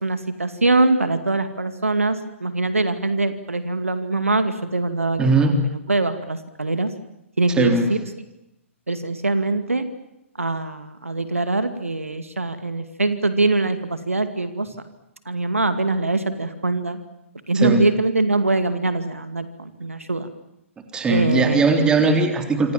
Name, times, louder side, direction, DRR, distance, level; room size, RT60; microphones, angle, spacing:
voice 1, 0.0-6.9 7.4-8.0 8.9-9.9 10.4-14.7 15.3-17.0 17.5-20.3 21.1-21.6, right 2 dB, 75° right, 10 dB, 2.3 m, -23 dB
voice 2, 5.2-5.6 7.6-7.9 17.5-17.8 20.9-22.7, right 3 dB, 10° right, 5 dB, 3.7 m, -19 dB
27.5 x 26.0 x 7.4 m, 0.87 s
figure-of-eight pair, 120°, 7 cm